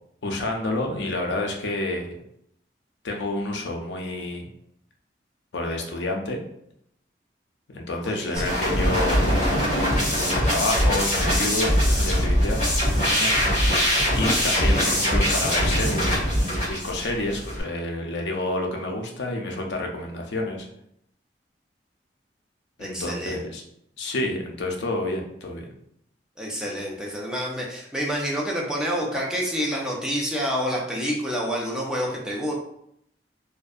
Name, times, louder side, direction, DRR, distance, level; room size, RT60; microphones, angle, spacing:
voice 1, 0.2-2.2 3.0-4.5 5.5-6.4 7.7-9.3 10.1-12.6 13.2-13.3 14.2-16.2 16.7-20.7 22.8-23.6 24.0-25.7, left 2 dB, 80° left, 1 dB, 0.5 m, -29 dB
voice 2, 8.0-8.7 14.6-15.1 22.8-23.4 26.4-32.5, equal, 5° right, -3 dB, 0.4 m, -28 dB
sound 1, 8.4-17.6, equal, 45° left, 1.4 m, -22 dB
2.6 x 2.2 x 2.3 m, 0.73 s
head